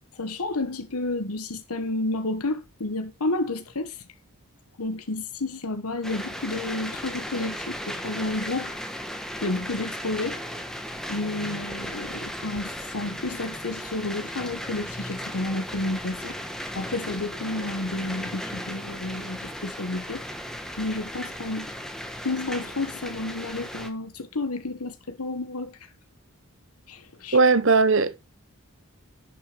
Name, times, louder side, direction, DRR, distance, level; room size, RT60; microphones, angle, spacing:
voice 1, 0.1-4.1 4.8-8.7 9.4-10.4 11.1-16.4 16.7-20.2 20.8-21.7 22.2-25.8 26.9-27.4, left 2 dB, 90° left, 1.3 m, -31 dB
sound 1, 6.0-23.9, equal, ahead, 1.3 m, -36 dB
voice 2, 27.3-28.2, right 4 dB, 60° right, 0.9 m, -18 dB
11.0 x 6.2 x 5.0 m
head